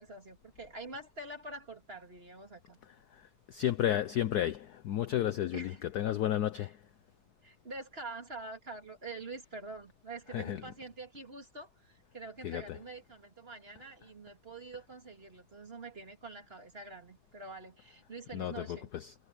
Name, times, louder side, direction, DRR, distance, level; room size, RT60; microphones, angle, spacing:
voice 1, 0.0-2.8 5.5-5.8 7.4-18.9, right 3 dB, 30° right, 2.7 m, -46 dB
voice 2, 3.1-6.8 10.3-10.6 12.4-12.8 18.3-19.1, left 11 dB, 65° left, 1.0 m, -32 dB
omnidirectional pair, 2.3 m